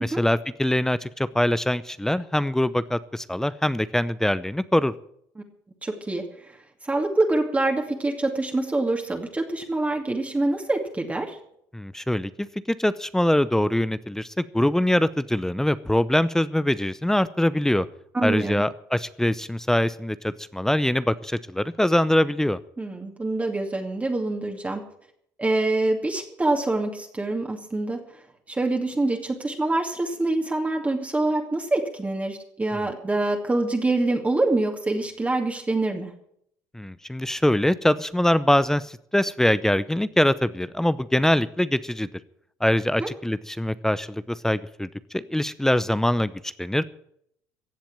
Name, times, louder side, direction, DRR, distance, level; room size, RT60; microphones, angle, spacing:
voice 1, 0.0-4.9 11.7-17.9 18.2-22.6 36.7-42.1 42.6-44.9 45.1-46.8, left 1 dB, 5° left, 16 dB, 0.7 m, -23 dB
voice 2, 5.8-6.6 6.8-11.4 18.1-18.6 22.8-24.8 25.4-28.0 28.5-36.1 43.0-43.1, right 2 dB, 20° right, 2 dB, 2.5 m, -25 dB
16.0 x 7.4 x 9.0 m, 0.69 s
supercardioid pair, 75°, 8 cm